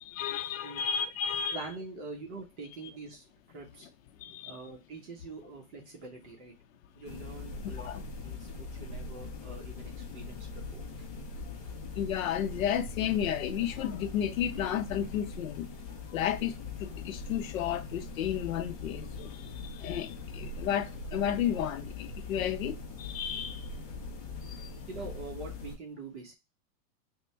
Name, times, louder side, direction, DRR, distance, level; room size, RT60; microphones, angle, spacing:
voice 1, 0.2-1.6 4.2-4.6 7.6-8.0 12.0-15.7 16.1-16.5 16.8-23.6 24.5-24.7, left 9 dB, 65° left, 0.6 m, -32 dB
voice 2, 1.5-3.2 3.5-3.9 4.5-6.5 6.9-7.9 8.2-10.9 24.9-26.3, right 3 dB, 50° right, 1.0 m, -44 dB
sound 1, 7.0-25.8, left 3 dB, 30° left, 0.5 m, -41 dB
3.5 x 2.1 x 4.3 m
supercardioid pair, 175°, 44 cm